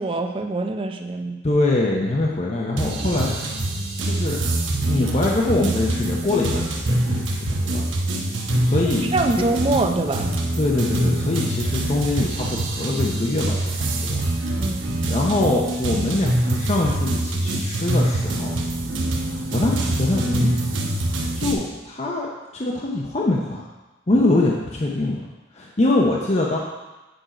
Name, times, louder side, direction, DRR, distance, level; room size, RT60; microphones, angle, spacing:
voice 1, 0.0-1.4 9.1-10.3 14.5-14.9, right 2 dB, 25° right, 5 dB, 0.5 m, -24 dB
voice 2, 1.4-3.3 4.0-4.4 4.8-7.8 8.6-9.1 9.4-9.5 10.6-14.2 15.0-18.5 19.2-20.5 21.1-23.6 24.1-26.6, left 2 dB, 30° left, -2 dB, 0.6 m, -23 dB
sound 1, 2.8-21.5, right 1 dB, 70° right, 1.0 m, -24 dB
7.9 x 4.5 x 5.0 m, 1.1 s
head